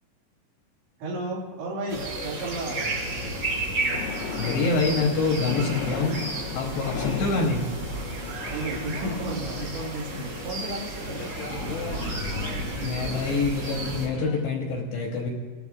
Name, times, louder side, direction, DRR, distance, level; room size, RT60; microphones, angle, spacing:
voice 1, 1.0-2.9 8.3-11.5, right 1 dB, 75° right, -3 dB, 4.7 m, -33 dB
sound 1, 1.9-14.1, right 2 dB, 50° right, 3.9 m, -33 dB
sound 2, 3.9-9.2, left 7 dB, 90° left, 3.4 m, -36 dB
voice 2, 4.4-6.2 6.5-7.7 12.8-15.3, left 3 dB, 75° left, -1 dB, 2.7 m, -26 dB
sound 3, 8.4-14.4, left 3 dB, 45° left, 1.7 m, -40 dB
20.5 x 11.5 x 2.4 m, 1.4 s
omnidirectional pair, 5.9 m